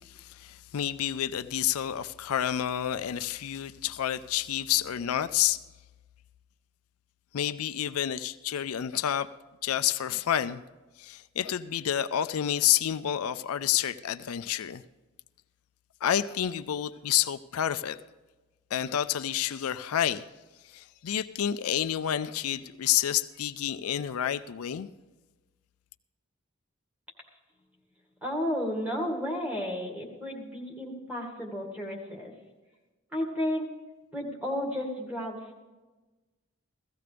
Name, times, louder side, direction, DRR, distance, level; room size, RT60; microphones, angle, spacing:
voice 1, 0.0-5.6 7.3-9.3 9.6-10.6 11.0-14.8 16.0-18.0 18.7-20.2 20.7-24.9, left 10 dB, 80° left, 11 dB, 0.4 m, -29 dB
voice 2, 28.2-32.3 33.1-33.7 34.1-35.6, equal, 5° right, -2 dB, 2.1 m, -32 dB
16.5 x 15.0 x 3.4 m, 1.2 s
head